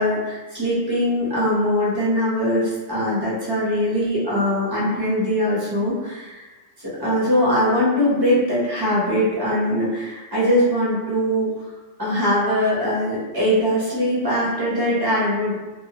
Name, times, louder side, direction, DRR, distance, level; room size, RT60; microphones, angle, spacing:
voice 1, 0.0-6.4 7.0-11.5 12.0-15.6, equal, 20° right, -8 dB, 0.8 m, -21 dB
2.4 x 2.2 x 2.8 m, 1.2 s
omnidirectional pair, 1.3 m